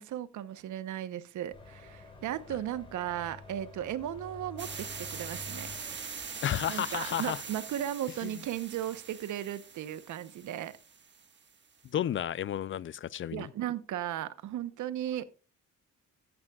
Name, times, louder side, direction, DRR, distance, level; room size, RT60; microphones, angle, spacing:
voice 1, 0.0-5.7 6.7-10.7 13.3-15.2, right 11 dB, 75° right, 1.0 m, -36 dB
sound 1, 1.5-6.6, left 4 dB, 15° left, 3.9 m, -49 dB
sound 2, 4.6-11.5, right 6 dB, 35° right, 1.7 m, -43 dB
voice 2, 6.4-7.4 8.2-8.3 11.8-13.5, left 10 dB, 45° left, 0.4 m, -32 dB
14.0 x 9.6 x 2.4 m
cardioid pair, 90°, 30 cm